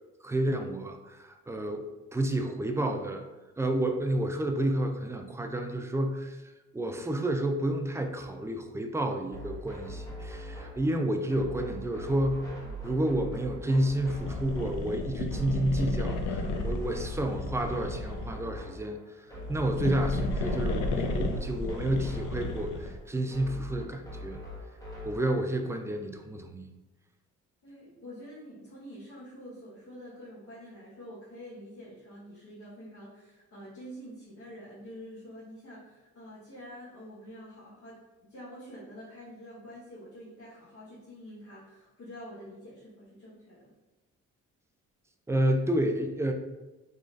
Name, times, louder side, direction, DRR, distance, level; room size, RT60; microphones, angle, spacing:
voice 1, 0.2-3.3 3.6-6.4 6.7-12.5 12.8-24.4 25.0-26.7 45.3-46.3, right 1 dB, 10° right, 5 dB, 0.3 m, -30 dB
sound 1, 9.3-25.3, equal, 10° left, 1.1 m, -42 dB
sound 2, 14.0-18.4 19.4-23.0, left 2 dB, 80° left, 0.5 m, -33 dB
voice 2, 27.6-43.7, equal, 60° left, -9 dB, 1.3 m, -47 dB
3.7 x 3.0 x 2.5 m, 1.1 s
cardioid pair, 90°, 30 cm